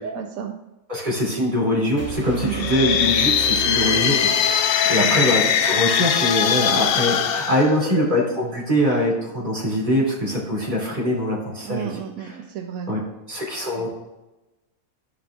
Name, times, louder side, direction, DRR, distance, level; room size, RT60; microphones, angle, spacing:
voice 1, 0.0-0.6 2.4-2.7 4.8-5.5 11.6-12.9 13.8-13.9, right 8 dB, 85° right, 3 dB, 1.1 m, -32 dB
voice 2, 0.9-4.6 4.9-11.9 12.2-12.4 12.9-13.0 13.3-13.9, equal, 35° right, -4 dB, 2.9 m, -23 dB
sound 1, 2.0-5.0, right 5 dB, 10° right, 1.9 m, -34 dB
sound 2, 2.4-8.4, left 8 dB, 65° left, 0.5 m, -21 dB
14.0 x 5.2 x 2.4 m, 0.99 s
omnidirectional pair, 1.4 m